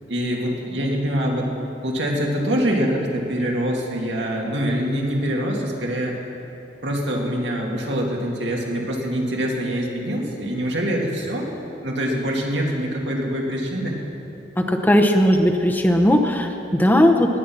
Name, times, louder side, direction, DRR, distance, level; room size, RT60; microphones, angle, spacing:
voice 1, 0.1-1.5 1.8-6.2 6.8-11.5 11.8-14.0, equal, 85° right, -1 dB, 2.4 m, -24 dB
voice 2, 14.6-17.4, equal, 10° left, 3 dB, 0.8 m, -17 dB
18.0 x 10.0 x 6.0 m, 3.0 s
head